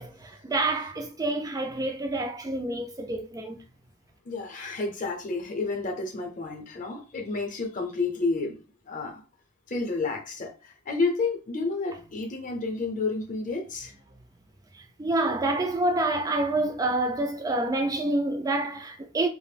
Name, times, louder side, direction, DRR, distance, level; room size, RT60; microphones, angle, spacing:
voice 1, 0.0-3.6 14.7-19.3, right 2 dB, 15° right, 0.3 m, -28 dB
voice 2, 4.2-8.6 8.9-9.2 9.7-13.9, left 3 dB, 35° left, 0.7 m, -30 dB
2.5 x 2.0 x 3.3 m
head